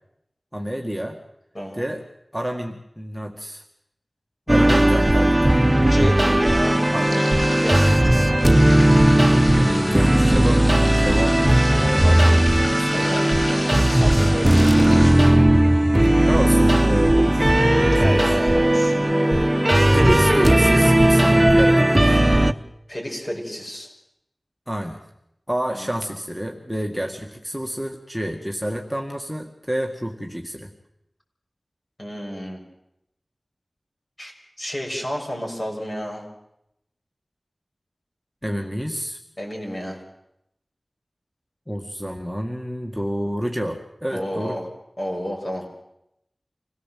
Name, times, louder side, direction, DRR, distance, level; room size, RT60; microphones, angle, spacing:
voice 1, 0.5-1.2 1.7-2.0 2.3-3.6 4.5-5.6 6.9-7.1 9.5-10.6 10.9-12.9 16.2-18.4 19.9-22.2 24.7-25.0 25.5-30.7 38.4-39.2 41.7-44.6, equal, ahead, 1 dB, 1.9 m, -28 dB
voice 2, 1.5-1.9 5.8-6.9 7.1-7.9 12.9-15.2 17.9-19.0 22.9-23.9 25.8-25.9 32.0-32.6 34.2-36.2 39.4-40.0 44.1-44.7 45.0-45.7, equal, 40° left, 0 dB, 6.9 m, -31 dB
sound 1, 4.5-22.5, right 1 dB, 20° right, 0.9 m, -17 dB
sound 2, 5.3-22.6, left 1 dB, 85° left, 5.0 m, -35 dB
26.0 x 17.5 x 7.6 m, 0.80 s
wide cardioid pair, 50°, 0 cm